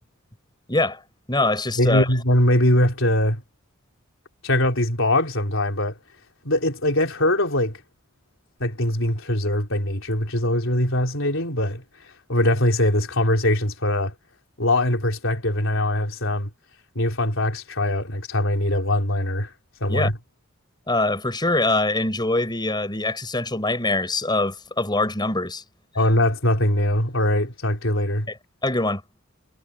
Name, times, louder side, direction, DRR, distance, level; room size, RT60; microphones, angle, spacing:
voice 1, 0.7-1.0 1.3-2.1 19.9-20.1 20.9-25.6 28.6-29.2, left 2 dB, 20° left, 6.1 m, -23 dB
voice 2, 1.8-3.4 4.4-6.0 6.4-7.8 8.6-11.8 12.3-14.1 14.6-16.5 16.9-19.5 19.8-20.1 25.9-28.3, left 1 dB, 65° left, 4.6 m, -22 dB
head